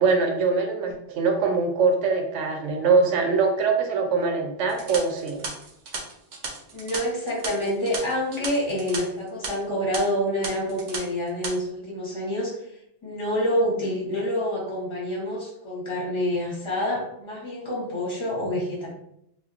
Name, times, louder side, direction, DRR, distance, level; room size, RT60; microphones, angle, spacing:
voice 1, 0.0-5.4, right 4 dB, 90° right, 3 dB, 0.9 m, -23 dB
sound 1, 4.7-9.0 9.3-9.5 9.9-10.0 10.4-11.0 11.3-11.5, right 3 dB, 55° right, 0.5 m, -35 dB
voice 2, 6.7-12.5 13.0-18.9, equal, 25° left, -5 dB, 0.9 m, -27 dB
2.8 x 2.2 x 2.4 m, 0.75 s
omnidirectional pair, 1.2 m